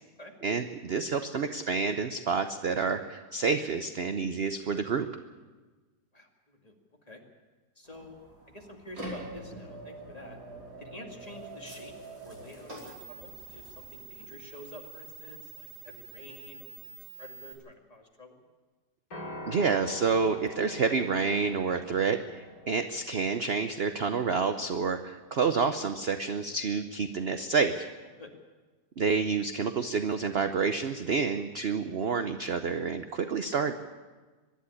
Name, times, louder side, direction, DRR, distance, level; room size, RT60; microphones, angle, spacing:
voice 1, 0.4-5.1 19.5-27.9 29.0-33.7, right 5 dB, 50° right, 8 dB, 0.8 m, -29 dB
voice 2, 6.1-6.7 7.1-7.2 7.8-8.2 8.5-10.4 10.8-11.9 12.2-18.4 28.2-28.3, left 1 dB, 25° left, 1 dB, 2.4 m, -49 dB
sound 1, 7.8-13.8, right 1 dB, 75° right, 5.6 m, -45 dB
sound 2, 11.2-17.5, right 5 dB, 30° right, 4.1 m, -49 dB
Piano, 19.1-27.4, equal, 60° left, 4.9 m, -47 dB
23.5 x 11.5 x 9.8 m, 1.3 s
omnidirectional pair, 1.8 m